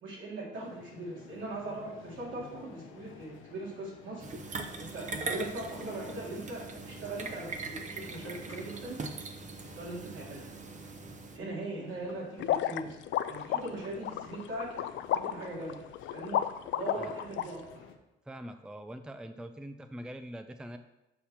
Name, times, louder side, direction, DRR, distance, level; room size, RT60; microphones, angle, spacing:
voice 1, 0.0-4.2 4.8-9.0 9.7-10.5 11.3-13.0 13.3-14.7 15.2-15.8 16.1-16.4 16.8-17.8, right 2 dB, 75° right, -4 dB, 2.9 m, -40 dB
sound 1, 0.5-18.0, left 7 dB, 85° left, 0.8 m, -53 dB
sound 2, 4.2-11.4, right 4 dB, 40° right, 0.9 m, -41 dB
sound 3, 12.4-17.4, left 11 dB, 70° left, 0.4 m, -32 dB
voice 2, 18.3-20.8, equal, 5° right, 8 dB, 0.4 m, -43 dB
6.6 x 5.7 x 4.3 m, 0.93 s
cardioid pair, 90°, 20 cm